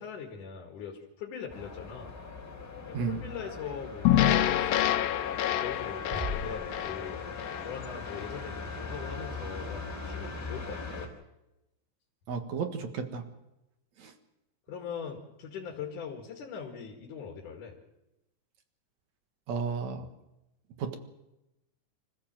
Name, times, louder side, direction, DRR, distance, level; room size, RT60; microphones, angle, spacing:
voice 1, 0.0-2.2 2.9-5.2 5.6-7.2 7.6-11.1 14.7-17.8, left 7 dB, 65° left, 1 dB, 3.4 m, -41 dB
sound 1, 1.5-11.1, left 4 dB, 30° left, 4.2 m, -40 dB
sound 2, 4.0-8.4, left 12 dB, 85° left, 2.6 m, -27 dB
sound 3, 6.1-7.8, left 1 dB, ahead, 5.0 m, -39 dB
voice 2, 12.3-13.2 14.0-14.1 19.5-20.1 20.8-21.0, right 5 dB, 60° right, 6 dB, 2.8 m, -33 dB
26.0 x 14.5 x 7.6 m, 0.94 s
omnidirectional pair, 4.0 m